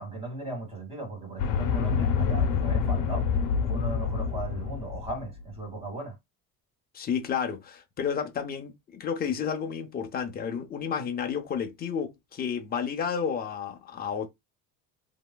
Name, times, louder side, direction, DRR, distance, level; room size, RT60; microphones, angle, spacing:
voice 1, 0.0-3.3 3.7-6.2, right 2 dB, 20° right, 2.0 m, -37 dB
sound 1, 1.4-5.3, left 6 dB, 85° left, 0.8 m, -27 dB
voice 2, 6.9-14.3, left 7 dB, 30° left, 0.7 m, -31 dB
3.1 x 2.8 x 2.2 m
cardioid pair, 145°, 31 cm